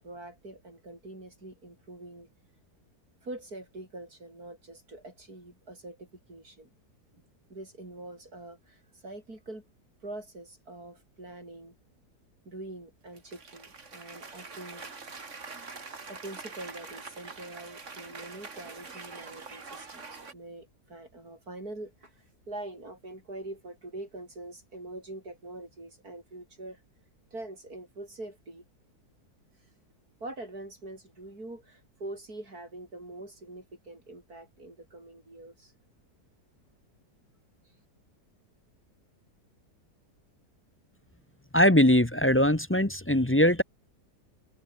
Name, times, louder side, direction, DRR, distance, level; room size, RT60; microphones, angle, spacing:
voice 1, 0.0-2.3 3.2-6.7 7.1-7.2 7.5-9.6 10.0-11.7 12.4-14.9 16.1-26.8 27.3-28.6 30.2-35.7, right 2 dB, 65° right, 8.2 m, -44 dB
Cheering / Applause, 13.1-20.3, right 4 dB, 50° right, 2.6 m, -44 dB
voice 2, 41.5-43.6, equal, 10° left, 0.8 m, -21 dB
open air
omnidirectional pair, 1.7 m